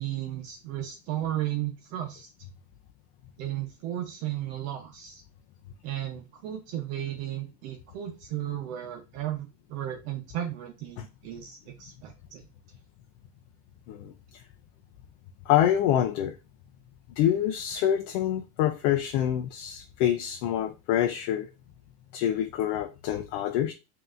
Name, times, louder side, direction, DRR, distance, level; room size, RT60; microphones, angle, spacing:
voice 1, 0.0-2.3 3.4-5.2 5.8-12.4, right 12 dB, 55° right, 0.9 m, -34 dB
voice 2, 15.5-16.4 17.2-21.5 22.1-23.7, left 11 dB, 50° left, 0.6 m, -26 dB
5.3 x 2.9 x 2.5 m
supercardioid pair, 130°, 49 cm